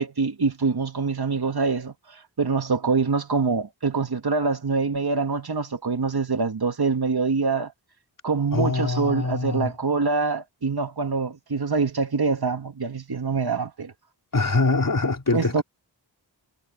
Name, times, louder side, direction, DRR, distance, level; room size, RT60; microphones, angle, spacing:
voice 1, 0.0-1.9 2.4-7.7 8.2-13.9 15.3-15.6, right 4 dB, 55° right, 2.4 m, -25 dB
voice 2, 8.5-9.7 14.3-15.6, left 3 dB, 45° left, 4.4 m, -23 dB
wide cardioid pair, 70°, 45 cm